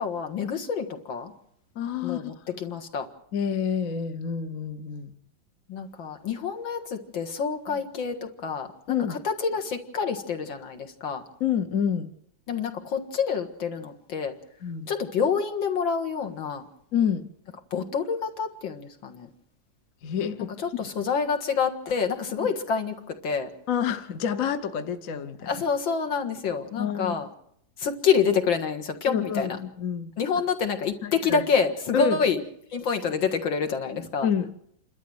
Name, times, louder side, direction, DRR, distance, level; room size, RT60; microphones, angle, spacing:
voice 1, 0.0-1.3 2.0-3.1 5.7-11.2 12.5-14.3 14.9-16.7 17.7-19.3 20.6-23.5 25.5-27.3 27.8-29.6 30.2-32.4 32.7-34.3, left 6 dB, 70° left, 4 dB, 2.5 m, -27 dB
voice 2, 1.7-2.3 3.3-5.1 7.7-7.8 8.9-9.2 11.4-12.1 14.6-14.9 16.9-17.3 20.0-20.5 23.7-25.5 26.7-27.1 29.1-30.1 31.0-31.4 31.9-32.2 34.2-34.5, left 8 dB, 50° left, 9 dB, 1.2 m, -28 dB
28.5 x 12.5 x 7.9 m, 0.72 s
omnidirectional pair, 2.2 m